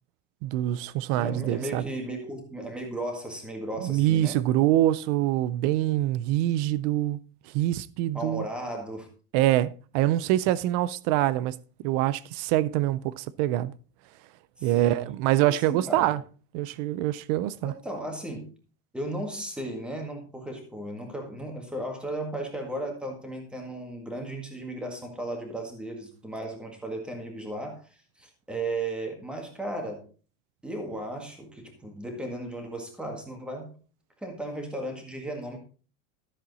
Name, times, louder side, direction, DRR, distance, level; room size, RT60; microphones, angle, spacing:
voice 1, 0.4-1.9 3.8-7.2 7.5-8.4 9.3-11.6 11.8-13.7 14.6-16.2 16.5-17.7, right 14 dB, 35° right, 0.4 m, -25 dB
voice 2, 1.1-4.4 8.1-9.1 14.6-15.0 15.5-16.2 17.6-18.5 18.9-30.0 30.6-33.7 34.2-35.6, right 1 dB, 5° right, 1.8 m, -35 dB
13.5 x 7.4 x 4.1 m
cardioid pair, 180°, 36 cm